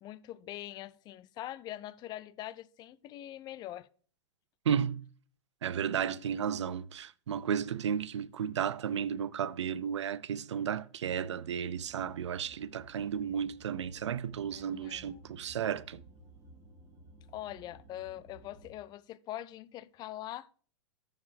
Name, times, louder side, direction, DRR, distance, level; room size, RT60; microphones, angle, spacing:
voice 1, 0.0-3.9 14.5-15.2 17.3-20.5, left 13 dB, 30° left, 0.4 m, -43 dB
voice 2, 4.7-5.0 5.6-16.0, right 8 dB, 75° right, 0.5 m, -33 dB
sound 1, 11.7-18.8, right 1 dB, 20° right, 1.9 m, -56 dB
13.5 x 4.8 x 3.4 m
figure-of-eight pair, 105°, 15 cm